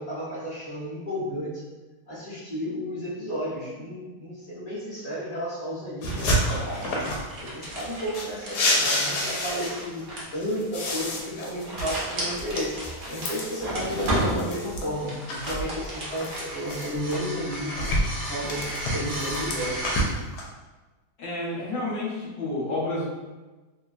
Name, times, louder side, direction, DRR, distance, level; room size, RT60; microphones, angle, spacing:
voice 1, 0.0-1.6 2.1-7.0 7.4-10.0 10.3-12.8 13.1-17.9 18.3-20.0, equal, 30° left, -10 dB, 0.8 m, -32 dB
sound 1, 6.0-7.3 7.6-10.0 10.4-14.9 15.3-17.1 17.5-20.4, left 1 dB, 80° left, 1.1 m, -29 dB
sound 2, 6.1-20.0, right 1 dB, 55° right, 0.8 m, -34 dB
voice 2, 21.2-23.0, left 2 dB, 55° left, -7 dB, 1.1 m, -30 dB
3.0 x 2.1 x 2.4 m, 1.2 s
omnidirectional pair, 1.7 m